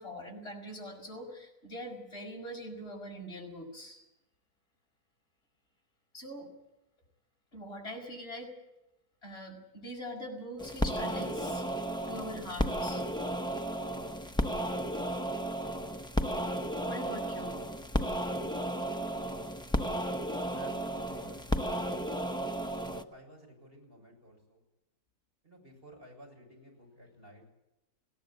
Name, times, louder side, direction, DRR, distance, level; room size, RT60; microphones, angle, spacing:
voice 1, 0.0-4.0 6.1-6.5 7.5-8.5 9.2-11.6 12.1-13.0 16.6-17.6, equal, 40° left, -1 dB, 6.0 m, -43 dB
sound 1, 10.6-23.0, equal, 5° left, 0.7 m, -33 dB
voice 2, 20.5-21.9 22.9-24.6 25.4-27.5, equal, 35° right, 0 dB, 7.4 m, -54 dB
20.5 x 17.5 x 8.8 m, 0.91 s
omnidirectional pair, 1.6 m